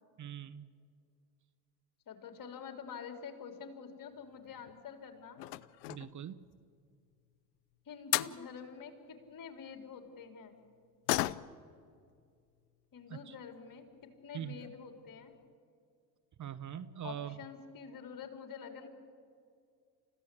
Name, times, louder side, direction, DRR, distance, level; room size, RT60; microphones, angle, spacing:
voice 1, 0.2-0.7 5.9-6.4 13.1-13.3 14.3-14.6 16.4-17.4, right 10 dB, 35° right, 13 dB, 1.0 m, -42 dB
voice 2, 2.1-5.4 7.9-10.6 12.9-15.3 17.0-18.9, left 6 dB, 40° left, 5 dB, 3.9 m, -47 dB
sound 1, 4.3-4.8 5.3-6.2 7.7-7.8 8.1-8.4 11.1-11.7 12.1-12.2 12.6-12.7 13.5-13.6 13.9-14.0 14.5-14.8 15.1-15.2 15.5-15.6, left 18 dB, 75° left, 0.8 m, -35 dB
30.0 x 15.5 x 8.5 m, 2.2 s
hypercardioid pair, 65°, 48 cm